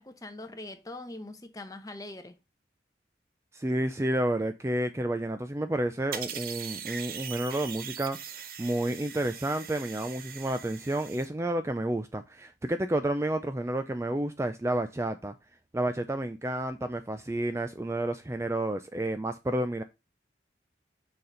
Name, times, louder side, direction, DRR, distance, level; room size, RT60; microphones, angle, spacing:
voice 1, 0.0-2.4, left 2 dB, 20° left, 0.9 m, -42 dB
voice 2, 3.5-15.3 15.7-19.8, right 1 dB, 15° right, 0.4 m, -30 dB
sound 1, 6.1-11.3, right 8 dB, 50° right, 0.8 m, -41 dB
6.8 x 4.1 x 5.0 m
head